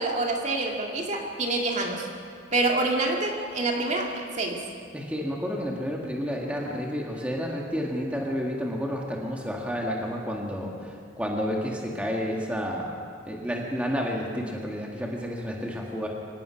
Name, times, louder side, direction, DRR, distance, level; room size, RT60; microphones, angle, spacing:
voice 1, 0.0-2.1 2.5-4.6, right 2 dB, 35° right, 0 dB, 2.1 m, -27 dB
voice 2, 4.9-13.0 13.3-16.1, equal, 5° right, -1 dB, 2.0 m, -30 dB
25.5 x 18.0 x 5.9 m, 2.2 s
head